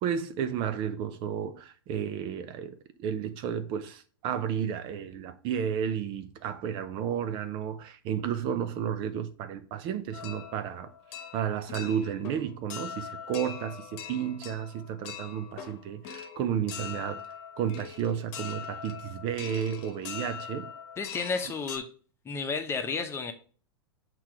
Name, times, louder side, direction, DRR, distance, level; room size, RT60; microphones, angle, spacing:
voice 1, 0.0-10.9 11.3-17.2 17.6-20.7, right 8 dB, 40° right, 0.5 m, -32 dB
sound 1, 10.1-21.8, left 8 dB, 45° left, 1.0 m, -42 dB
voice 2, 21.0-21.9 22.2-23.3, left 4 dB, 20° left, 0.9 m, -32 dB
7.2 x 3.0 x 4.7 m
hypercardioid pair, 105°, 13 cm